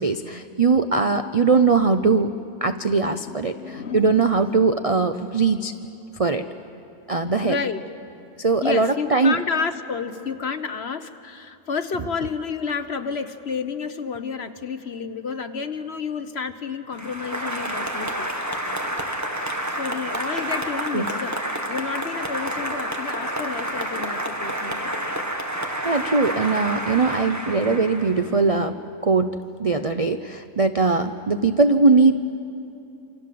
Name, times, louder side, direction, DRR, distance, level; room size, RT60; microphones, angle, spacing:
voice 1, 0.0-2.3 2.6-5.7 6.2-6.4 7.1-7.6 8.4-9.4 20.9-21.1 25.8-28.8 29.0-32.1, right 4 dB, 45° right, 8 dB, 0.4 m, -20 dB
voice 2, 3.1-4.5 7.4-7.8 8.6-18.3 19.7-21.4 21.7-24.9, left 5 dB, 45° left, 9 dB, 1.1 m, -30 dB
Applause, 16.9-28.4, right 1 dB, 10° right, 1.9 m, -29 dB
28.0 x 26.5 x 7.7 m, 2.7 s
omnidirectional pair, 1.6 m